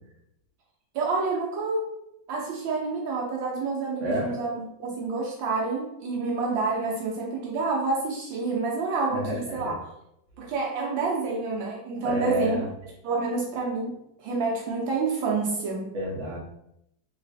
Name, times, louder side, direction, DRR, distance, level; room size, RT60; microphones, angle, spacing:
voice 1, 0.9-1.9 2.3-9.8 10.4-12.6 13.0-15.9, right 3 dB, 75° right, -2 dB, 1.4 m, -28 dB
voice 2, 4.0-4.4 9.1-9.7 12.0-12.7 15.9-16.4, equal, 45° right, -4 dB, 1.2 m, -30 dB
4.0 x 3.1 x 2.6 m, 0.80 s
omnidirectional pair, 2.2 m